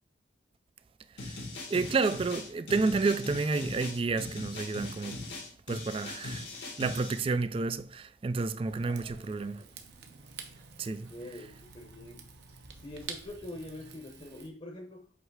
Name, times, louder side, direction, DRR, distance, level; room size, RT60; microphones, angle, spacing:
sound 1, 1.2-7.2, left 2 dB, 90° left, 1.9 m, -40 dB
voice 1, 1.7-5.2 5.7-6.5 6.8-9.6 10.8-11.1, right 4 dB, 30° right, 0.3 m, -30 dB
Rain / Fire, 8.7-14.5, right 5 dB, 65° right, 0.9 m, -48 dB
voice 2, 8.8-9.7 11.1-12.3 12.8-15.1, left 1 dB, 35° left, 0.9 m, -45 dB
7.9 x 3.2 x 4.7 m
head